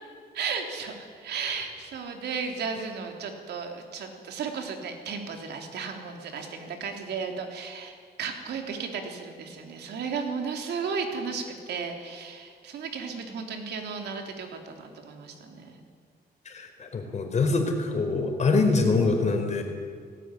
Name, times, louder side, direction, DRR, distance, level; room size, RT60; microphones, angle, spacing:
voice 1, 0.3-15.8, right 5 dB, 90° right, 4 dB, 3.5 m, -34 dB
voice 2, 16.5-19.6, left 3 dB, 45° left, 4 dB, 4.5 m, -24 dB
18.5 x 18.0 x 10.0 m, 2.1 s
cardioid pair, 115°, 17 cm